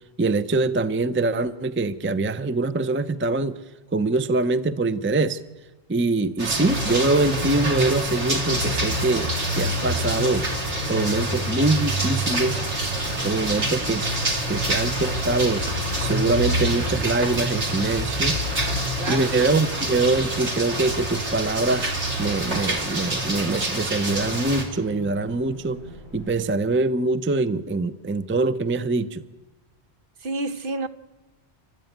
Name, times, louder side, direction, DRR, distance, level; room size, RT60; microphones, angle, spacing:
voice 1, 0.2-3.6 3.9-5.4 5.9-12.6 13.2-14.1 14.5-15.6 16.0-18.4 19.1-21.9 22.2-25.8 26.1-29.2, right 3 dB, 15° right, 0.5 m, -24 dB
sound 1, 6.4-24.6, right 1 dB, 85° right, 3.4 m, -26 dB
sound 2, 6.7-26.4, equal, 70° right, 5.8 m, -42 dB
voice 2, 19.0-19.4 30.2-30.9, right 3 dB, 55° right, 1.1 m, -29 dB
28.5 x 13.5 x 9.2 m
omnidirectional pair, 1.1 m